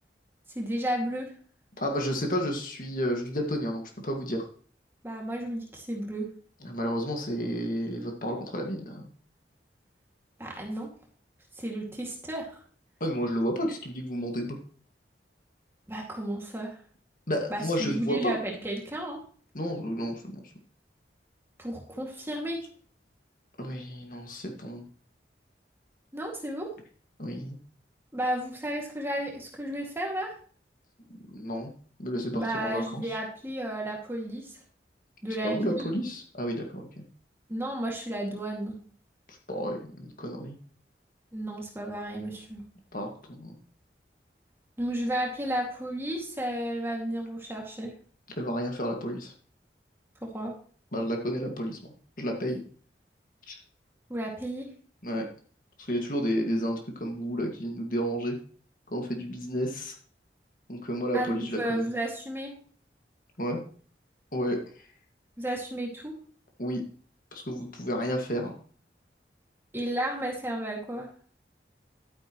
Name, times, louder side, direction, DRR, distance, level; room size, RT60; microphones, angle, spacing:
voice 1, 0.6-1.3 5.0-6.3 10.4-10.9 11.6-12.5 15.9-16.7 17.5-19.2 21.6-22.6 26.1-26.7 28.1-30.3 32.3-34.5 35.2-35.9 37.5-38.8 41.3-42.6 44.8-47.9 50.2-50.5 54.1-54.7 61.1-62.5 65.4-66.1 69.7-71.1, right 1 dB, 15° right, -1 dB, 2.3 m, -33 dB
voice 2, 1.8-4.5 6.6-9.0 13.0-14.6 17.3-18.4 19.5-20.2 23.6-24.9 27.2-27.6 31.1-31.7 32.0-33.2 35.4-37.0 39.3-40.6 42.9-43.6 48.4-49.3 50.9-51.8 52.2-52.6 53.5-53.6 55.0-55.3 55.8-58.4 58.9-59.9 60.7-61.9 63.4-63.6 64.3-64.6 66.6-66.8 67.3-68.6, equal, 50° left, 2 dB, 2.0 m, -31 dB
12.0 x 9.4 x 3.1 m, 0.43 s
head